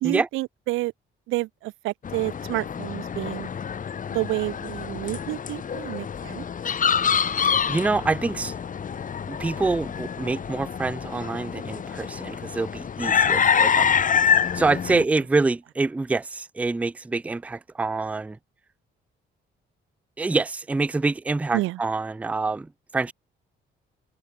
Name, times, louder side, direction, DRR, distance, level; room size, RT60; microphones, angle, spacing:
voice 1, 0.0-0.9 1.3-3.5 4.1-6.5 13.3-13.6 14.9-15.0 21.5-21.8, right 18 dB, 85° right, 0.5 m, -29 dB
sound 1, 2.0-15.0, left 7 dB, 40° left, 1.2 m, -26 dB
voice 2, 7.5-8.5 9.3-13.9 14.5-18.4 20.2-23.1, right 3 dB, 5° right, 0.3 m, -26 dB
open air
cardioid pair, 90°, 20 cm